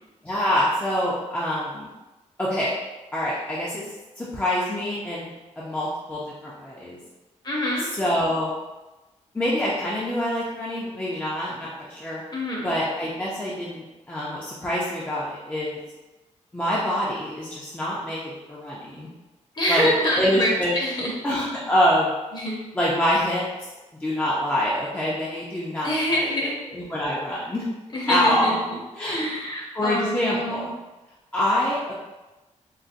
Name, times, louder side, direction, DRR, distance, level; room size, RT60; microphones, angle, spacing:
voice 1, 0.2-1.9 2.4-2.7 3.1-3.8 4.2-5.3 5.6-7.0 7.8-8.5 9.3-12.2 12.6-15.8 16.5-19.1 19.7-19.9 20.2-20.8 21.2-22.1 22.7-23.5 24.0-26.3 26.7-27.6 28.1-28.6 28.9-29.3 29.7-30.7 31.3-31.9, left 1 dB, 15° left, -7 dB, 0.4 m, -25 dB
voice 2, 7.4-7.8 12.3-12.7 19.5-21.1 22.3-22.6 25.8-26.5 27.9-28.6 29.0-30.7, equal, 35° left, -3 dB, 0.8 m, -26 dB
3.9 x 2.1 x 2.5 m, 1.1 s
wide cardioid pair, 140°, 13 cm